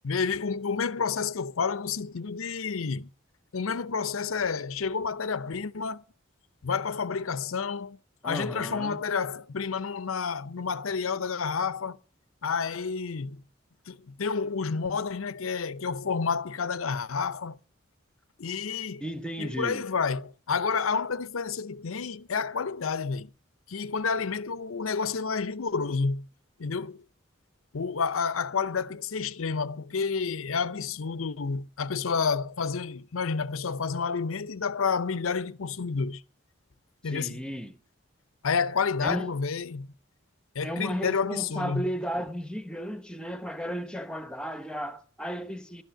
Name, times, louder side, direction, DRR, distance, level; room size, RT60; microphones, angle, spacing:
voice 1, 0.0-3.1 3.5-6.0 6.6-8.0 8.2-12.0 12.4-13.4 13.9-17.6 18.4-19.0 19.4-23.3 23.7-26.3 26.6-27.0 27.7-36.2 37.0-37.4 38.4-39.9 40.5-41.9, left 5 dB, 85° left, 0.7 m, -30 dB
voice 2, 8.2-9.0 19.0-19.8 37.1-37.8 39.0-39.3 40.6-45.8, equal, 5° left, 1.0 m, -34 dB
12.0 x 9.2 x 8.9 m
head